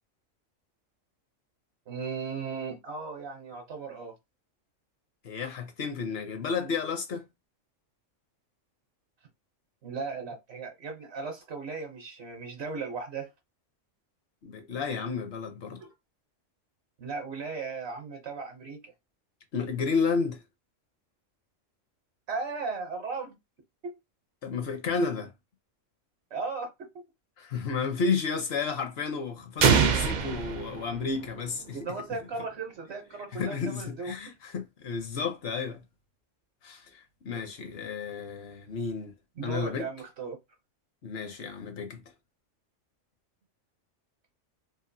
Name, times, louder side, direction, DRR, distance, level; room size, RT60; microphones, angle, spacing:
voice 1, 1.9-4.2 9.8-13.3 15.8-15.9 17.0-18.9 22.3-23.4 23.8-23.9 26.3-27.0 31.7-34.3 39.4-40.4, right 4 dB, 60° right, 0.9 m, -36 dB
voice 2, 5.2-7.3 14.4-15.8 19.5-20.4 24.4-25.3 27.4-31.8 33.3-35.8 36.6-39.1 39.4-39.9 41.0-42.0, left 5 dB, 60° left, 0.8 m, -32 dB
sound 1, 29.6-31.5, right 6 dB, 80° right, 0.4 m, -24 dB
2.9 x 2.4 x 2.6 m
omnidirectional pair, 1.3 m